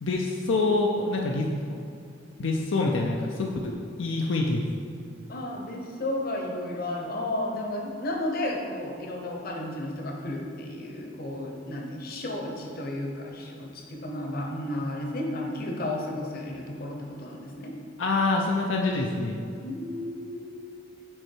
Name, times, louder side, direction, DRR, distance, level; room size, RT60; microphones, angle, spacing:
voice 1, 0.0-1.8 2.4-3.7 4.0-4.6 18.0-19.4, left 3 dB, 75° left, 0 dB, 0.6 m, -26 dB
voice 2, 5.3-17.8 19.6-21.1, left 1 dB, 50° left, 1 dB, 1.0 m, -33 dB
7.8 x 4.3 x 4.6 m, 2.4 s
head